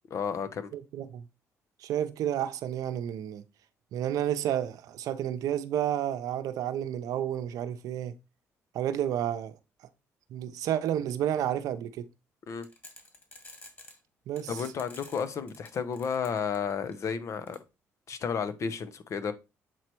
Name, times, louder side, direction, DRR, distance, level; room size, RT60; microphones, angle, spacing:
voice 1, 0.1-0.7 12.5-12.7 14.5-17.6 18.1-19.3, left 6 dB, 55° left, 0.8 m, -32 dB
voice 2, 0.7-1.3 1.8-3.4 3.9-8.1 8.7-9.6 10.3-12.1 14.3-14.6, right 10 dB, 75° right, 0.6 m, -31 dB
sound 1, 12.6-14.0 14.4-16.9 17.5-17.6, left 2 dB, 30° left, 2.5 m, -49 dB
7.6 x 3.1 x 4.5 m
supercardioid pair, 75°, 6 cm